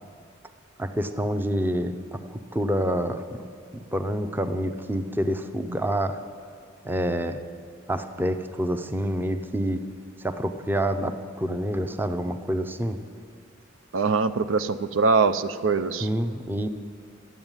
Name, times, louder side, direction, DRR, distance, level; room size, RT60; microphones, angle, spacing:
voice 1, 0.8-3.5 3.7-6.2 6.8-7.4 7.9-9.9 10.2-13.0 16.0-16.7, equal, 10° right, 8 dB, 0.6 m, -27 dB
voice 2, 13.9-16.1, right 4 dB, 75° right, 12 dB, 0.6 m, -23 dB
13.0 x 9.5 x 8.9 m, 2.5 s
head